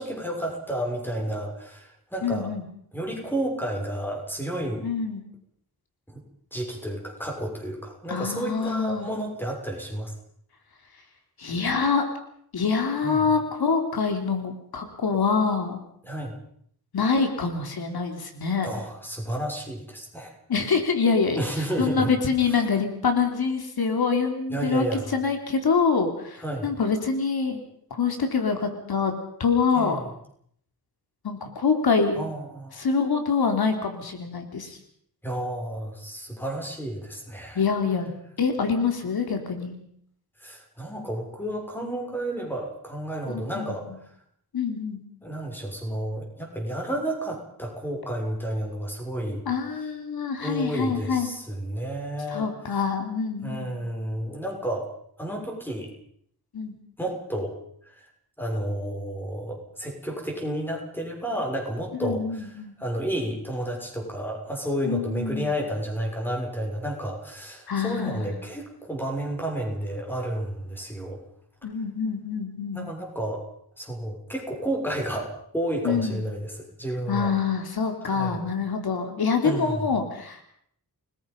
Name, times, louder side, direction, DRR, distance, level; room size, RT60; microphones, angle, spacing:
voice 1, 0.0-2.5 2.9-4.8 6.1-6.2 6.5-10.1 13.0-13.2 16.1-16.4 18.6-20.3 21.4-22.1 22.5-22.6 24.5-25.2 26.4-26.7 29.7-30.0 32.1-32.9 35.2-37.6 40.4-43.9 45.2-49.4 50.4-52.5 53.4-54.9 55.2-55.9 57.0-57.6 57.9-58.0 58.4-71.2 72.7-73.4 73.8-77.3 78.1-78.4 79.4-79.9, right 1 dB, 5° left, 1 dB, 6.5 m, -31 dB
voice 2, 2.2-2.6 4.8-5.2 8.1-9.1 11.4-12.1 12.5-15.8 16.9-18.7 20.5-21.4 21.8-24.8 25.1-27.6 28.0-29.1 29.4-30.0 31.2-32.2 32.8-34.8 37.6-38.1 38.4-39.8 43.3-43.7 44.5-45.0 49.5-51.3 52.3-53.7 56.5-56.7 62.0-62.7 64.8-65.5 67.7-68.3 71.6-72.9 75.8-76.2 77.1-80.4, left 5 dB, 75° left, 5 dB, 3.6 m, -25 dB
29.5 x 21.0 x 5.5 m, 0.66 s
wide cardioid pair, 145°, 38 cm